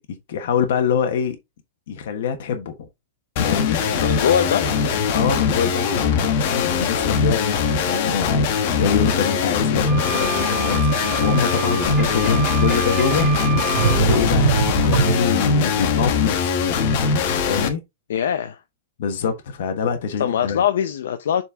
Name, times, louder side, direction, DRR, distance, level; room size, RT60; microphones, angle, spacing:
voice 1, 0.3-1.4 1.9-2.9 3.4-3.8 5.1-7.6 7.8-13.3 13.7-16.5 17.4-17.8 19.0-20.6, left 7 dB, 55° left, 1.3 m, -24 dB
sound 1, 3.4-17.7, left 5 dB, 40° left, 1.2 m, -21 dB
voice 2, 4.0-4.7 18.1-18.6 20.2-21.4, left 9 dB, 80° left, 0.7 m, -21 dB
sound 2, 9.9-14.0, right 11 dB, 20° right, 0.3 m, -30 dB
Sink (filling or washing), 11.8-15.6, right 4 dB, 5° right, 2.5 m, -24 dB
7.2 x 4.4 x 3.6 m
supercardioid pair, 175°, 0 cm